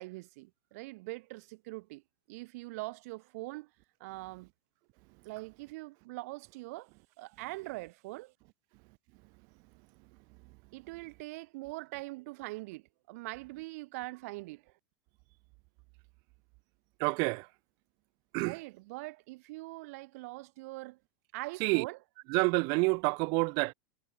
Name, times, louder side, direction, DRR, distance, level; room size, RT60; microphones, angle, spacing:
voice 1, 0.0-2.0 2.3-3.7 4.0-4.5 5.2-6.9 7.2-8.3 10.7-14.7 18.4-21.0 21.3-22.0, right 22 dB, 60° right, 1.6 m, -42 dB
voice 2, 17.0-17.5 18.3-18.5 21.6-21.9 22.3-23.7, right 32 dB, 45° right, 0.4 m, -28 dB
supercardioid pair, 140°, 9 cm